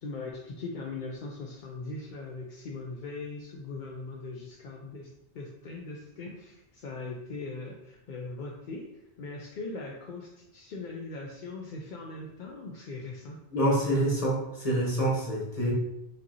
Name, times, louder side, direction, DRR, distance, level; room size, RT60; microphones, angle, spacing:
voice 1, 0.0-8.9 9.2-13.4, left 3 dB, 60° left, -1 dB, 0.5 m, -40 dB
voice 2, 13.5-15.7, right 1 dB, 30° left, -4 dB, 1.2 m, -26 dB
5.1 x 2.7 x 2.8 m, 0.86 s
omnidirectional pair, 1.2 m